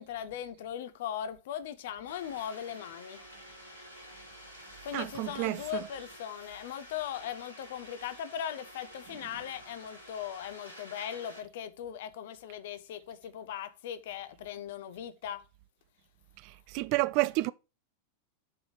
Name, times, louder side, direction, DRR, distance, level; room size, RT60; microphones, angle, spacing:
voice 1, 0.0-3.2 4.8-15.4, left 10 dB, 55° left, 0.8 m, -39 dB
sound 1, 2.1-11.4, equal, 85° left, 3.0 m, -50 dB
voice 2, 4.9-5.8 16.7-17.5, right 20 dB, 45° right, 0.3 m, -29 dB
6.6 x 4.0 x 6.1 m
figure-of-eight pair, 90°, 0 cm